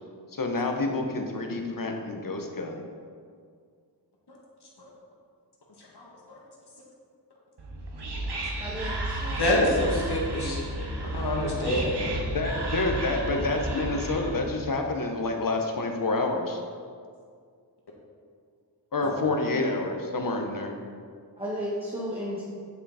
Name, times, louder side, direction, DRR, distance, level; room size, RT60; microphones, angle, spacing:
voice 1, 0.3-2.8 12.3-16.6 18.9-20.8, left 2 dB, 55° left, 3 dB, 1.1 m, -28 dB
voice 2, 5.8-6.4 8.1-8.4 9.4-12.0 19.0-19.1, left 1 dB, 70° left, -3 dB, 1.8 m, -28 dB
Whispering, 7.6-14.5, right 1 dB, 75° right, 1.2 m, -32 dB
voice 3, 8.6-9.6 21.4-22.4, equal, 15° right, -8 dB, 1.8 m, -34 dB
9.2 x 5.8 x 4.2 m, 2.1 s
wide cardioid pair, 65°, 41 cm